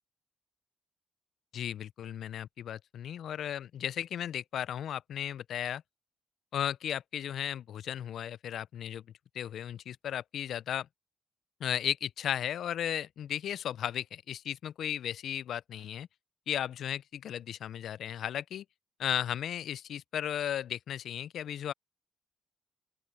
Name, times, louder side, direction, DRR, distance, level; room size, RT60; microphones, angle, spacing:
voice 1, 1.5-5.8 6.5-9.0 9.3-10.9 11.6-16.1 16.5-18.6 19.0-21.7, left 10 dB, 75° left, 0.3 m, -35 dB
open air
cardioid pair, 115°, 0 cm